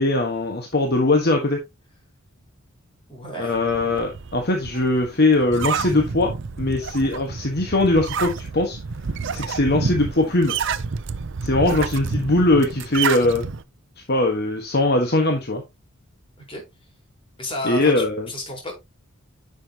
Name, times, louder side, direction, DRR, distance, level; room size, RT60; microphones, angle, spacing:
voice 1, 0.0-1.6 3.4-6.3 6.6-8.8 9.3-10.5 11.4-13.4 14.1-15.6 17.6-18.3, left 2 dB, 50° left, 2 dB, 1.4 m, -20 dB
voice 2, 3.1-3.5 16.4-16.6 17.4-18.7, equal, 25° left, 0 dB, 4.3 m, -32 dB
sound 1, 3.6-13.6, right 5 dB, 60° right, 0.6 m, -29 dB
10.5 x 6.3 x 2.9 m, 0.22 s
head